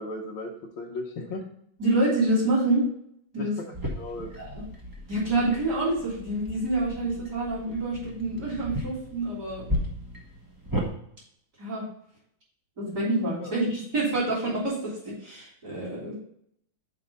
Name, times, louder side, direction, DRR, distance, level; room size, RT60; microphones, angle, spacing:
voice 1, 0.0-1.4 3.4-4.3 13.4-13.6, left 2 dB, 75° left, -4 dB, 1.8 m, -36 dB
voice 2, 1.8-2.8 3.3-3.6 4.3-4.6 5.1-9.7 11.6-11.9 12.8-16.1, right 2 dB, 45° right, -8 dB, 3.7 m, -27 dB
sound 1, 3.7-10.9, equal, 15° right, 1.0 m, -35 dB
6.1 x 4.8 x 5.3 m, 0.70 s
omnidirectional pair, 2.2 m